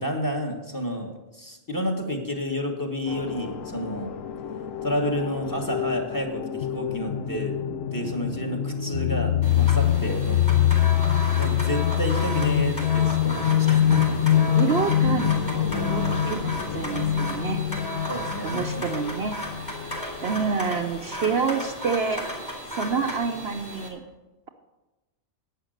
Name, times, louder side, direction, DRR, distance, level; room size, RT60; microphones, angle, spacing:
voice 1, 0.0-4.2 4.8-7.6 7.9-10.6 11.3-14.2 18.1-18.6, equal, 15° left, 3 dB, 1.6 m, -30 dB
sound 1, 3.1-20.2, left 10 dB, 80° left, 1.1 m, -25 dB
sound 2, 9.4-23.9, equal, 35° left, 3.5 m, -35 dB
voice 2, 14.6-17.6 18.4-19.4 20.2-22.2 22.8-24.0, right 5 dB, 60° right, 5 dB, 0.9 m, -28 dB
11.0 x 9.1 x 6.5 m, 1.1 s
omnidirectional pair, 1.3 m